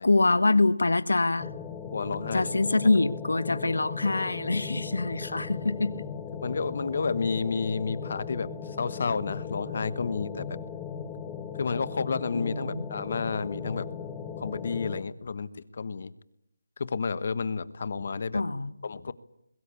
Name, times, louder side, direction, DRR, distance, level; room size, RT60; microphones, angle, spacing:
voice 1, 0.0-1.5 2.3-6.0 12.3-12.8 18.3-18.7, left 2 dB, 85° left, 14 dB, 1.6 m, -25 dB
sound 1, 1.4-15.0, left 7 dB, 10° left, 1.2 m, -38 dB
voice 2, 1.9-2.5 6.4-10.6 11.6-13.9 14.4-16.1 16.8-18.4 18.8-19.1, left 5 dB, 45° left, 16 dB, 1.2 m, -31 dB
23.0 x 22.0 x 8.4 m, 0.78 s
figure-of-eight pair, 170°, 0 cm